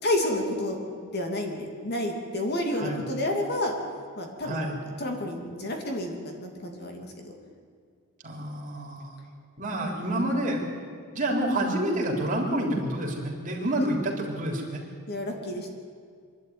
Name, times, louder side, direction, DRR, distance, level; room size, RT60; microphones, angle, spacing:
voice 1, 0.0-0.8 1.1-3.7 4.2-4.7 5.0-7.3 13.8-13.9 15.1-15.7, left 1 dB, 50° left, 2 dB, 2.8 m, -30 dB
voice 2, 4.4-4.7 8.2-9.1 9.6-10.7 11.1-14.8, right 1 dB, 35° right, 0 dB, 3.7 m, -28 dB
25.0 x 12.0 x 9.6 m, 2.2 s
head